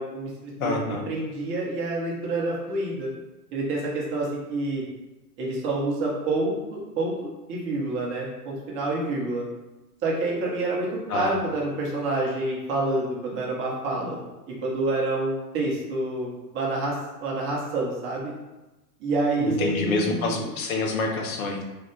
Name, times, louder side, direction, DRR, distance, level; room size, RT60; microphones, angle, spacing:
voice 1, 0.0-0.8 1.1-3.1 3.5-4.8 5.4-9.4 10.0-14.2 14.5-18.3 19.0-20.5, right 2 dB, 25° right, -4 dB, 0.8 m, -28 dB
voice 2, 0.6-1.0 11.1-11.4 19.4-21.6, left 3 dB, 60° left, 2 dB, 0.8 m, -27 dB
3.3 x 2.3 x 3.1 m, 1.1 s
figure-of-eight pair, 100°, 48 cm